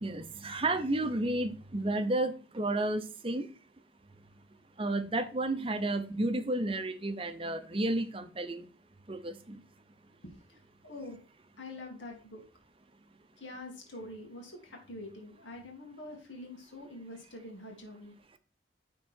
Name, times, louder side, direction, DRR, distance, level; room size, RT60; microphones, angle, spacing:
voice 1, 0.0-3.5 4.8-8.7 9.1-9.6, right 2 dB, 30° right, 0.7 m, -32 dB
voice 2, 10.2-11.2 11.6-12.4 13.4-18.1, left 1 dB, 75° left, 2.1 m, -45 dB
11.0 x 3.8 x 4.4 m
head